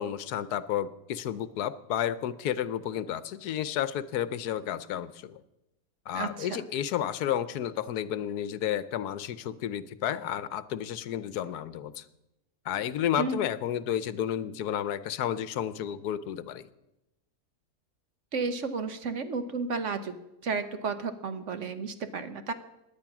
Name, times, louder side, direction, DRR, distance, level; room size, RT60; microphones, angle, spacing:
voice 1, 0.0-5.4 6.1-12.0 12.6-16.7, left 10 dB, 80° left, 15 dB, 1.2 m, -31 dB
voice 2, 6.1-6.7 13.2-13.4 18.3-20.2 20.4-22.5, right 4 dB, 55° right, 10 dB, 1.2 m, -32 dB
17.5 x 10.5 x 6.0 m, 0.93 s
omnidirectional pair, 1.7 m